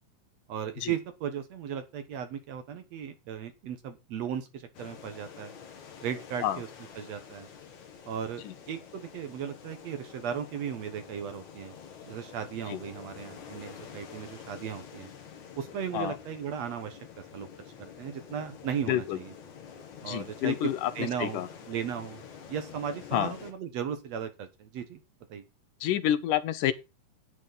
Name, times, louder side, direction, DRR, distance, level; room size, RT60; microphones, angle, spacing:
voice 1, 0.5-5.5 6.0-6.7 7.0-7.5 8.1-11.7 12.1-15.1 15.6-17.5 17.8-19.3 20.0-20.7 21.0-22.2 22.5-25.0 25.3-25.4, right 8 dB, 65° right, 2.0 m, -36 dB
sound 1, 4.7-23.5, left 7 dB, 60° left, 3.1 m, -48 dB
voice 2, 18.9-19.2 20.0-20.9 21.2-21.5 23.1-23.3 25.8-26.7, left 12 dB, 80° left, 2.4 m, -28 dB
11.0 x 9.1 x 4.0 m
omnidirectional pair, 3.8 m